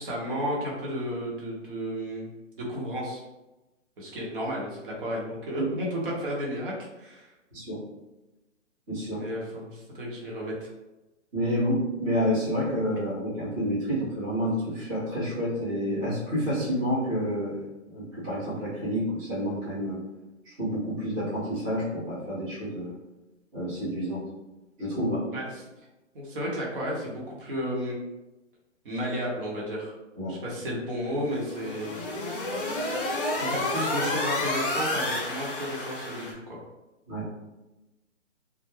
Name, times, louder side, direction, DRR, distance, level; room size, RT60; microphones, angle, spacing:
voice 1, 0.0-2.3 2.6-3.2 4.0-7.3 9.2-10.7 25.3-25.6 26.1-28.0 28.8-29.9 30.3-32.0 33.1-36.6, equal, 45° right, -4 dB, 0.8 m, -33 dB
voice 2, 8.9-9.2 11.3-20.0 20.4-22.9 23.5-24.2 24.8-25.3 30.2-30.3 37.1-37.3, equal, 15° right, -12 dB, 0.5 m, -29 dB
sound 1, 31.3-36.3, left 2 dB, 45° left, 0.6 m, -30 dB
2.3 x 2.0 x 3.1 m, 1.0 s
hypercardioid pair, 150°, 39 cm